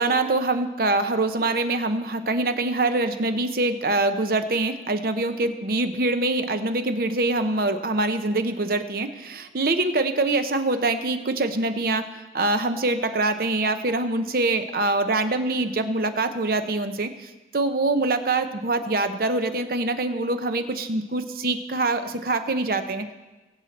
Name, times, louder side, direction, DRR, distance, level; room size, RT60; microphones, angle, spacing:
voice 1, 0.0-12.1 12.3-17.1 17.5-23.1, right 2 dB, 55° right, 9 dB, 0.7 m, -24 dB
20.5 x 7.3 x 4.1 m, 1.2 s
head